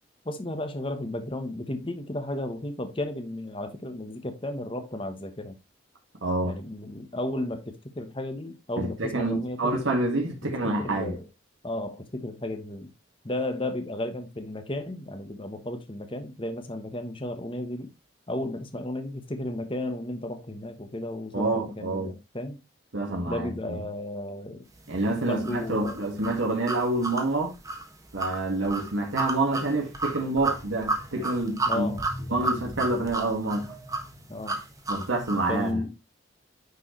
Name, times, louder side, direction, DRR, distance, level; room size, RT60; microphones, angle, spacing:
voice 1, 0.2-5.6 6.4-9.8 10.4-10.5 10.8-11.2 11.6-12.9 13.2-17.9 18.3-22.6 23.2-24.7 25.3-26.0 31.6-32.1 34.3-34.6 35.3-35.9, left 1 dB, 25° left, 1.1 m, -34 dB
voice 2, 6.2-6.5 8.8-11.2 21.3-22.2 22.9-23.8 24.9-27.5 28.1-31.9 32.3-33.7 34.9-35.8, right 2 dB, 80° right, 1.9 m, -27 dB
sound 1, 25.4-35.5, right 3 dB, 15° right, 1.3 m, -32 dB
9.4 x 4.6 x 3.1 m
head